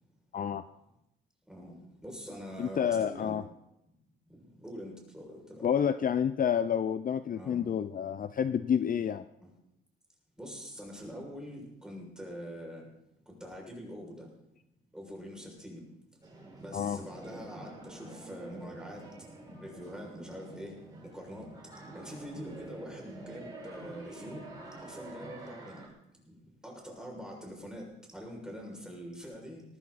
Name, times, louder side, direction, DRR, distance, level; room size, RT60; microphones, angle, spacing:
voice 1, 0.3-0.6 2.6-3.4 5.6-9.2 16.7-17.0, left 8 dB, 45° left, 12 dB, 0.6 m, -29 dB
voice 2, 1.5-3.4 4.5-5.7 7.4-7.6 10.4-12.9 13.3-14.3 14.9-15.8 16.6-19.0 19.6-20.7 21.0-21.5 21.9-25.9 26.1-26.3 26.6-29.6, equal, 5° right, -1 dB, 6.7 m, -44 dB
sound 1, 16.2-25.9, right 2 dB, 20° right, 6.3 m, -47 dB
19.0 x 14.5 x 4.3 m, 0.86 s
cardioid pair, 90°, 20 cm